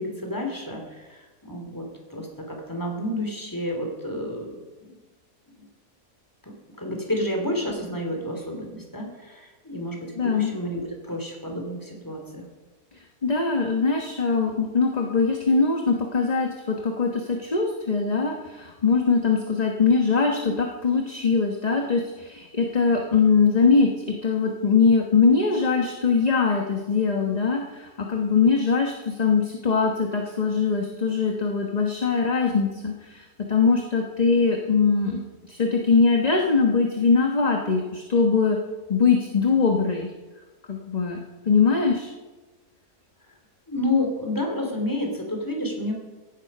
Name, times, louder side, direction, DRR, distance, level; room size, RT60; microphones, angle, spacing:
voice 1, 0.0-1.8 2.1-4.5 4.8-4.9 5.5-5.6 6.4-12.4 43.7-45.9, left 1 dB, 10° left, 2 dB, 3.0 m, -30 dB
voice 2, 10.2-10.5 13.2-38.6 38.9-40.1 40.7-41.2 41.4-42.1, left 5 dB, 30° left, 2 dB, 1.2 m, -22 dB
16.0 x 11.0 x 5.5 m, 1.2 s
omnidirectional pair, 1.7 m